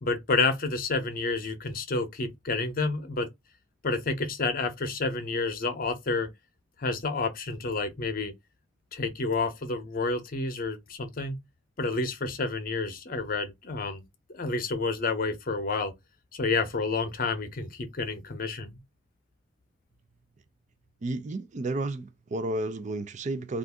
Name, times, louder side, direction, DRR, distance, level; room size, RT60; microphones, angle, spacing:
voice 1, 0.0-3.3 3.8-6.3 6.8-8.3 8.9-11.4 11.8-14.0 14.3-15.9 16.3-18.8, left 3 dB, 50° left, 0.7 m, -29 dB
voice 2, 21.0-23.6, right 2 dB, 40° right, 0.4 m, -32 dB
2.6 x 2.5 x 3.5 m
head